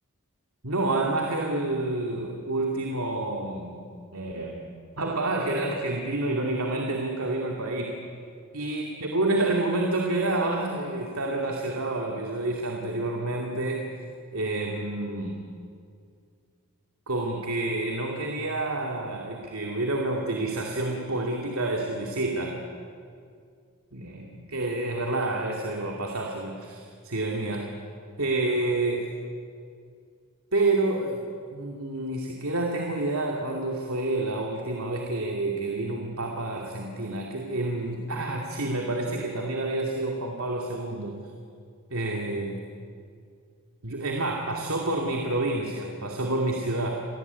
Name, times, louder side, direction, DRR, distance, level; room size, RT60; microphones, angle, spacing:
voice 1, 0.6-3.8 4.1-4.7 5.0-8.0 8.5-13.9 14.3-15.4 17.1-22.6 23.9-27.7 28.2-29.1 30.5-31.3 31.5-41.2 41.9-42.6 43.8-46.9, right 2 dB, 75° right, 1 dB, 2.5 m, -28 dB
28.0 x 18.0 x 9.5 m, 2.2 s
head